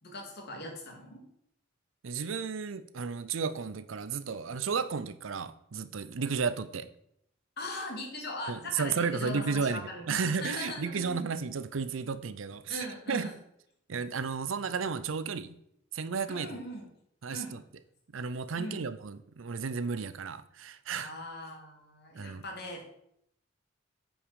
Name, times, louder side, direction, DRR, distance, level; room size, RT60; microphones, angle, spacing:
voice 1, 0.0-1.2 7.6-11.2 12.7-13.3 16.3-16.9 17.3-17.5 18.6-18.9 21.0-22.8, left 1 dB, 55° left, 1 dB, 2.2 m, -40 dB
voice 2, 2.0-6.9 8.5-13.3 13.9-15.6 15.9-16.6 17.2-17.6 18.1-21.1 22.1-22.4, right 5 dB, 80° right, 13 dB, 0.6 m, -33 dB
8.7 x 5.4 x 4.8 m, 0.74 s
head